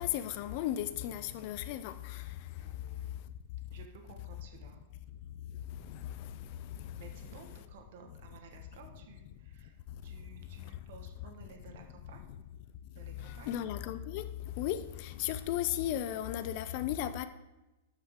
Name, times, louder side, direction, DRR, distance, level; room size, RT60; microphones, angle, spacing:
voice 1, 0.0-2.3 5.8-6.3 6.8-6.9 13.2-14.3 14.6-17.3, left 12 dB, 40° left, 0.4 m, -35 dB
voice 2, 2.6-3.1 3.7-4.8 7.0-9.7 10.0-12.2 12.9-13.5, right 5 dB, 55° right, 1.4 m, -55 dB
12.5 x 5.6 x 3.7 m
supercardioid pair, 170°, 0 cm